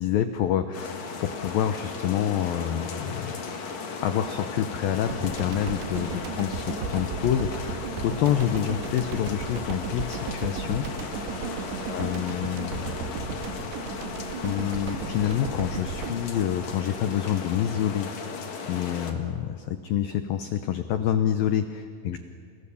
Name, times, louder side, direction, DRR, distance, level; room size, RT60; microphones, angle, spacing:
voice 1, 0.0-3.4 4.0-10.9 11.9-12.9 14.4-18.4 18.7-22.2, left 10 dB, 90° left, 8 dB, 2.0 m, -27 dB
sound 1, 0.7-19.1, left 4 dB, 50° left, 2.5 m, -36 dB
sound 2, 5.1-17.6, right 6 dB, 65° right, 3.5 m, -35 dB
30.0 x 28.5 x 7.1 m, 2.3 s
omnidirectional pair, 5.5 m